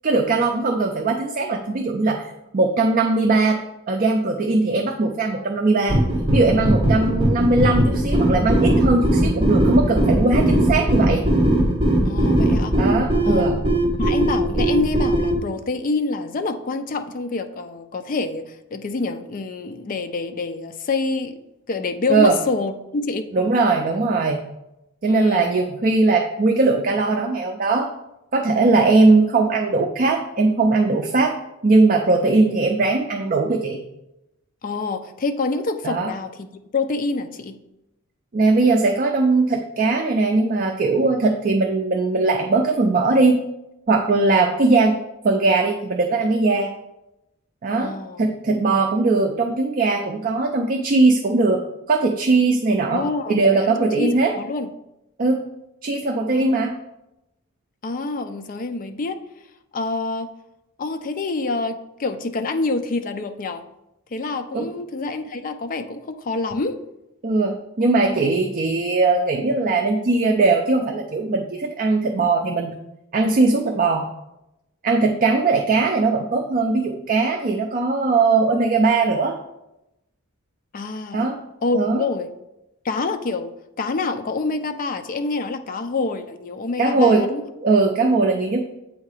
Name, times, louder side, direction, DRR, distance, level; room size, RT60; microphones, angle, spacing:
voice 1, 0.0-3.6 3.9-6.0 6.3-11.3 12.7-13.6 22.1-22.4 23.3-24.4 25.0-27.9 28.3-31.4 31.6-33.8 35.8-36.1 38.3-43.4 43.9-45.0 45.2-46.7 47.6-51.6 51.9-54.3 55.2-55.4 55.8-56.7 64.5-64.7 67.2-72.7 73.1-74.1 74.8-79.4 81.1-81.4 81.7-82.1 86.8-87.3 87.6-88.7, right 3 dB, 40° right, 2 dB, 0.5 m, -19 dB
sound 1, 5.9-15.4, right 1 dB, 25° right, 1.0 m, -19 dB
voice 2, 12.1-12.8 13.3-13.5 14.0-21.4 21.7-23.3 25.1-25.5 34.6-36.5 36.7-37.6 47.8-48.2 52.9-54.7 56.3-56.5 57.8-59.2 59.7-60.4 60.8-63.6 64.1-66.7 80.7-81.3 81.6-82.3 82.8-83.5 83.8-87.4, left 3 dB, 40° left, 8 dB, 0.4 m, -26 dB
7.5 x 2.8 x 4.8 m, 0.90 s
head